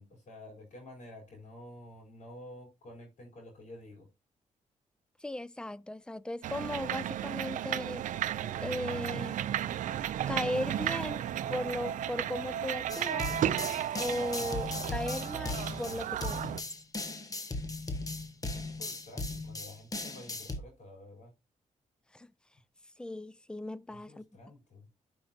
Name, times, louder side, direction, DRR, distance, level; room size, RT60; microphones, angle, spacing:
voice 1, 0.0-4.1 18.6-21.3 23.9-24.9, left 1 dB, 70° left, 4.0 m, -50 dB
voice 2, 5.2-8.1 8.6-9.4 10.3-13.4 14.0-16.5 22.1-22.3 23.0-24.2, left 1 dB, 5° left, 0.4 m, -37 dB
sound 1, 6.4-16.6, right 11 dB, 80° right, 0.5 m, -34 dB
sound 2, 12.9-20.6, left 2 dB, 25° left, 1.4 m, -37 dB
12.0 x 5.5 x 2.8 m
cardioid pair, 85°, 13 cm